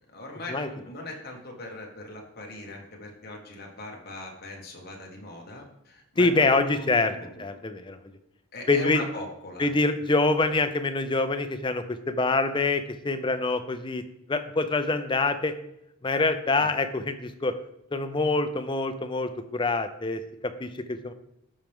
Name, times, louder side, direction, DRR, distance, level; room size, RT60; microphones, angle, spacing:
voice 1, 0.1-7.4 8.5-9.7 16.6-16.7, left 2 dB, 45° left, 0 dB, 1.5 m, -39 dB
voice 2, 6.2-7.1 7.4-8.0 8.7-9.0 9.6-14.0 14.3-15.5 16.0-17.6 17.9-21.1, left 3 dB, 20° left, 9 dB, 0.4 m, -25 dB
12.5 x 4.5 x 3.5 m, 0.80 s
head